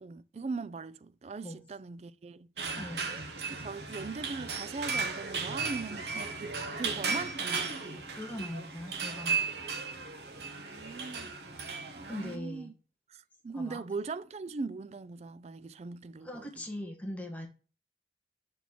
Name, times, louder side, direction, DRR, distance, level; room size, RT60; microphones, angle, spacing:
voice 1, 0.0-2.5 3.0-7.8 10.4-11.4 12.0-12.7 13.1-16.5, right 4 dB, 40° right, 0.3 m, -40 dB
sound 1, 2.6-12.4, right 4 dB, 70° right, 1.2 m, -36 dB
voice 2, 2.8-3.3 8.1-9.4 12.0-12.7 13.5-13.8 16.2-17.5, left 1 dB, 10° left, 1.4 m, -40 dB
6.9 x 4.1 x 4.4 m
head